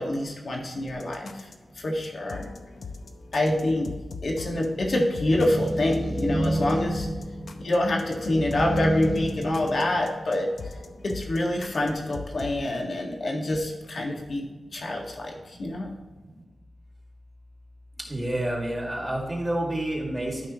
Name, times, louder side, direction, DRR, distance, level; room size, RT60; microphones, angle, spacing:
voice 1, 0.0-1.5 1.8-2.5 3.3-3.9 4.2-7.1 7.6-10.5 11.0-14.5 14.7-15.9, left 1 dB, 55° left, -1 dB, 1.8 m, -26 dB
sound 1, 0.9-12.7, left 4 dB, 80° left, 0.7 m, -41 dB
sound 2, 5.3-10.4, right 1 dB, 5° left, 1.0 m, -29 dB
voice 2, 18.1-20.5, right 1 dB, 15° right, -1 dB, 2.0 m, -28 dB
13.0 x 5.6 x 3.0 m, 1.2 s
wide cardioid pair, 135°, 0 cm